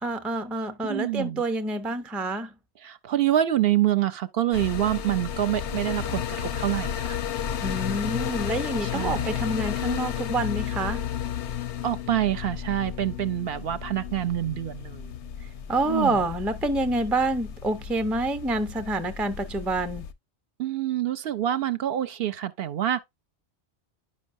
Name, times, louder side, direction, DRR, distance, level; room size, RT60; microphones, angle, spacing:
voice 1, 0.0-2.5 7.6-11.0 15.7-20.1, right 2 dB, ahead, 0.4 m, -27 dB
voice 2, 0.8-1.4 2.8-7.2 8.8-9.4 11.8-15.1 15.9-16.2 20.6-23.0, right 12 dB, 65° right, 0.7 m, -26 dB
sound 1, 4.5-20.1, left 9 dB, 90° left, 1.0 m, -33 dB
10.5 x 5.3 x 2.5 m
omnidirectional pair, 1.1 m